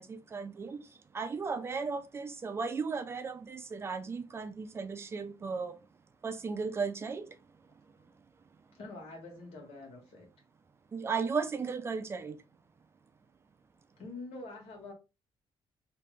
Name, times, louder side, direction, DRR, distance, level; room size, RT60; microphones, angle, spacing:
voice 1, 0.0-5.8 6.2-7.4 10.9-12.4, right 5 dB, 25° right, 0.4 m, -36 dB
voice 2, 8.7-10.3 14.0-14.9, left 2 dB, 85° left, 1.7 m, -46 dB
3.0 x 2.9 x 3.3 m
cardioid pair, 160°, 10 cm